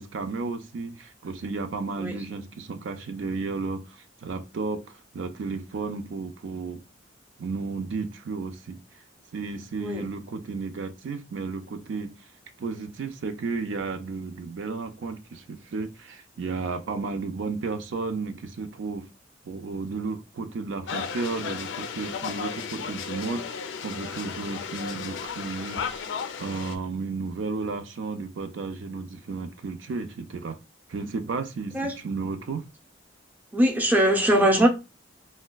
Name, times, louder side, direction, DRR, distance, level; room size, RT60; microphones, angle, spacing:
voice 1, 0.0-6.8 7.4-8.8 9.3-12.1 12.6-19.0 19.4-26.1 26.4-30.6 30.9-32.6, right 4 dB, 90° right, 0.4 m, -33 dB
sound 1, 20.9-26.8, left 6 dB, 85° left, 0.4 m, -34 dB
voice 2, 33.5-34.7, right 1 dB, 10° right, 0.5 m, -21 dB
4.0 x 2.1 x 2.2 m
head